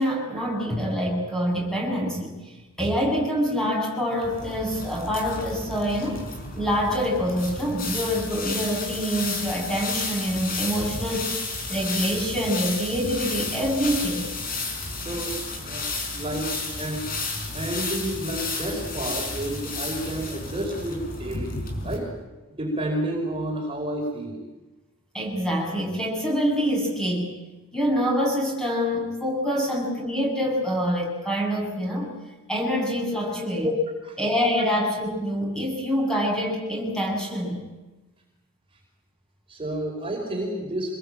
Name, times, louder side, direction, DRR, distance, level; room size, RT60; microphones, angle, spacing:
voice 1, 0.0-2.3 2.8-6.2 6.6-11.3 11.7-14.3 25.1-27.3 27.7-32.1 32.5-33.9 34.2-37.6, equal, 5° left, -1 dB, 7.3 m, -25 dB
sound 1, 4.2-22.0, left 3 dB, 40° left, 5.3 m, -32 dB
voice 2, 16.1-17.1 17.5-21.6 21.8-22.1 22.6-24.4 33.2-33.3 34.6-34.7 39.5-40.9, right 1 dB, 25° right, -1 dB, 5.2 m, -30 dB
26.0 x 21.5 x 8.9 m, 1.1 s
head